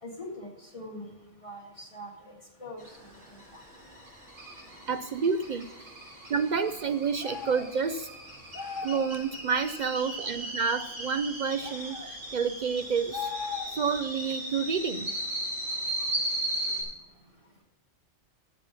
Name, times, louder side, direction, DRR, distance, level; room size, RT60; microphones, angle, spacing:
voice 1, 0.0-1.1 1.4-2.3 2.6-2.9 3.5-3.6, left 1 dB, 25° left, 0 dB, 1.9 m, -42 dB
sound 1, 2.8-16.8, right 1 dB, 90° right, 5.4 m, -37 dB
voice 2, 4.9-5.7 6.3-8.1 8.8-13.3 13.7-15.1, right 5 dB, 70° right, 11 dB, 0.4 m, -29 dB
sound 2, 7.2-7.7 8.5-9.1 11.6-12.1 13.1-13.9, left 6 dB, 70° left, 1.4 m, -37 dB
11.0 x 7.7 x 5.9 m, 1.0 s
omnidirectional pair, 1.3 m